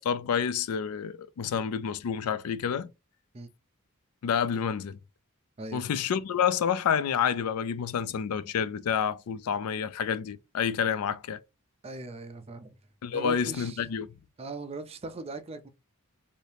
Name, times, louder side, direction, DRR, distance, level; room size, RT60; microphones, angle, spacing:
voice 1, 0.0-2.9 4.2-5.0 5.7-11.4 13.0-14.1, left 7 dB, 85° left, 0.4 m, -29 dB
voice 2, 5.6-5.9 11.8-12.8 13.1-13.8 14.4-15.7, right 2 dB, 25° right, 0.4 m, -39 dB
2.7 x 2.7 x 3.3 m
head